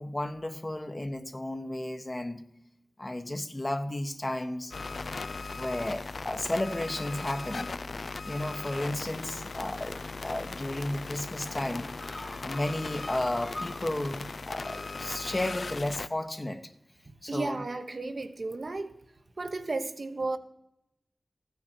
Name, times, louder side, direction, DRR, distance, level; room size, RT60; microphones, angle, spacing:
voice 1, 0.0-2.4 3.0-4.7 5.5-7.7 8.2-16.6 17.2-17.6, left 1 dB, 35° left, 1.1 m, -33 dB
sound 1, 4.7-16.1, left 3 dB, 75° left, 0.4 m, -38 dB
voice 2, 17.1-19.0 19.4-20.4, right 3 dB, 65° right, 0.9 m, -34 dB
14.5 x 9.6 x 4.4 m
cardioid pair, 40°, 0 cm